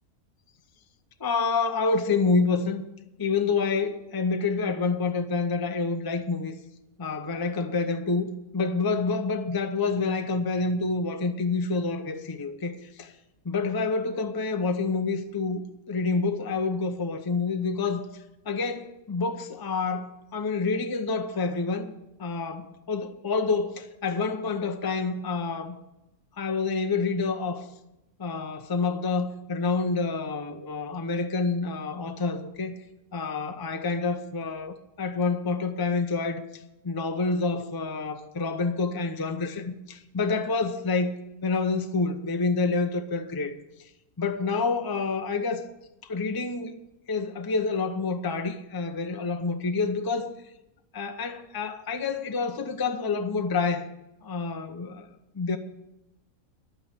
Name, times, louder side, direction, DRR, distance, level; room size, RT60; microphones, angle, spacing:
voice 1, 1.2-2.8 3.2-6.5 7.0-13.1 13.4-18.1 18.4-21.9 22.2-25.8 26.4-27.7 28.2-32.7 33.1-41.2 41.4-43.6 44.2-45.6 46.0-46.8 47.1-50.3 50.9-53.9 54.2-55.1 55.3-55.6, left 4 dB, 20° left, 0.7 m, -28 dB
11.0 x 9.0 x 8.3 m
omnidirectional pair, 1.5 m